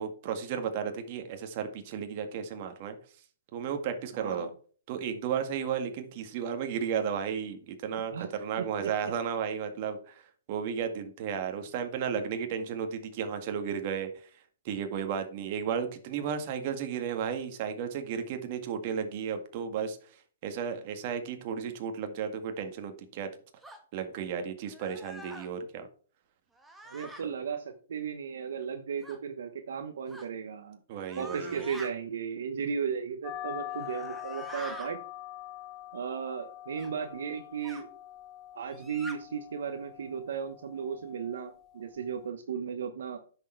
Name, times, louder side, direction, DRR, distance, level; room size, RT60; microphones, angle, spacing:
voice 1, 0.0-3.0 3.5-4.5 4.9-14.3 14.6-23.3 23.9-25.9 27.2-27.3 30.9-31.7, right 7 dB, 45° right, 6 dB, 1.9 m, -34 dB
voice 2, 4.1-4.5 8.0-8.3 8.6-8.9 26.8-30.8 31.2-35.0 35.9-37.9 38.5-43.2, right 6 dB, 75° right, 7 dB, 1.1 m, -35 dB
sound 1, 23.6-23.8 24.7-25.5 26.6-27.2 29.0-29.2 30.1-30.3 31.0-31.9 33.7-34.9 36.8-36.9 37.6-37.8 38.7-39.2, right 1 dB, 5° right, 1.6 m, -45 dB
sound 2, 33.2-42.3, left 13 dB, 20° left, 0.9 m, -44 dB
9.9 x 6.7 x 4.6 m, 0.42 s
hypercardioid pair, 140°, 0 cm